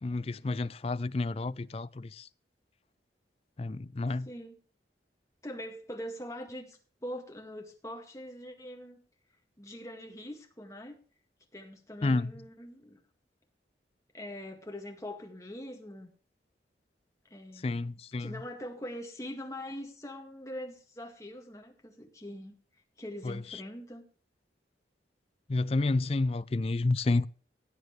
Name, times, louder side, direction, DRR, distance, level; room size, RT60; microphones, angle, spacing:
voice 1, 0.0-2.3 3.6-4.3 12.0-12.3 17.6-18.3 23.2-23.6 25.5-27.3, left 2 dB, 35° left, 0.4 m, -30 dB
voice 2, 4.2-4.6 5.4-9.0 9.6-10.9 11.5-13.0 14.1-16.1 17.3-17.8 18.2-22.5 23.0-24.0, equal, 15° left, 1.9 m, -43 dB
17.5 x 8.2 x 3.2 m
head